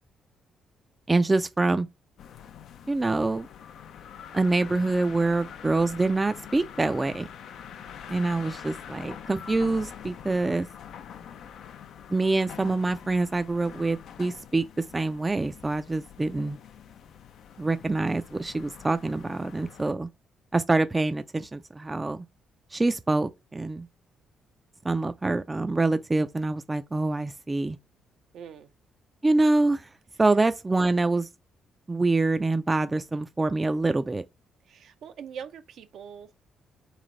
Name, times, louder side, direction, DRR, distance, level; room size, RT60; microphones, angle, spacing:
voice 1, 1.1-1.9 2.9-3.5 4.3-7.3 8.1-10.7 12.1-14.7 14.9-16.6 17.6-20.1 20.5-22.2 22.7-23.9 24.8-27.8 29.2-29.9 30.2-31.3 31.9-34.2, right 2 dB, 20° right, 0.3 m, -25 dB
sound 1, 2.2-19.9, left 8 dB, 70° left, 0.4 m, -45 dB
voice 2, 28.3-28.7 34.7-36.3, right 7 dB, 70° right, 0.5 m, -42 dB
3.2 x 3.2 x 3.8 m
cardioid pair, 90°, 0 cm